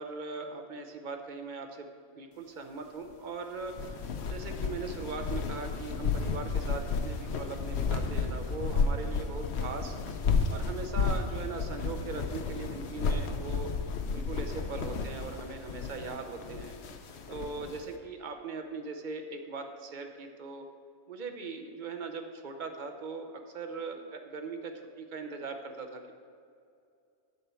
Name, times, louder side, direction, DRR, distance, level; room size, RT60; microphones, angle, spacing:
voice 1, 0.0-9.9 10.5-13.7 14.1-16.8 17.3-20.7 21.1-26.1, right 4 dB, 50° right, 5 dB, 0.7 m, -40 dB
sound 1, 3.6-17.8, left 4 dB, 65° left, 0.9 m, -32 dB
8.2 x 4.4 x 6.8 m, 2.4 s
omnidirectional pair, 1.3 m